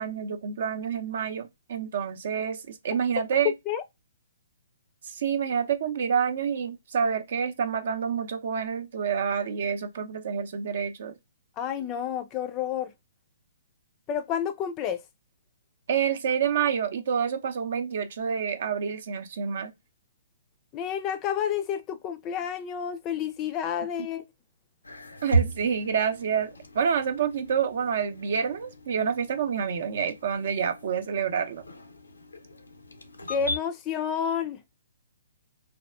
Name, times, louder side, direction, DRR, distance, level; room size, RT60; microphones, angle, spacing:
voice 1, 0.0-3.5 5.0-11.1 15.9-19.7 25.2-31.6, right 7 dB, 55° right, 0.5 m, -28 dB
voice 2, 11.6-12.9 14.1-15.0 20.7-24.2 33.3-34.6, left 8 dB, 25° left, 0.4 m, -30 dB
sound 1, 24.8-33.6, right 3 dB, 80° left, 0.5 m, -35 dB
3.4 x 2.3 x 2.3 m
figure-of-eight pair, 125°, 0 cm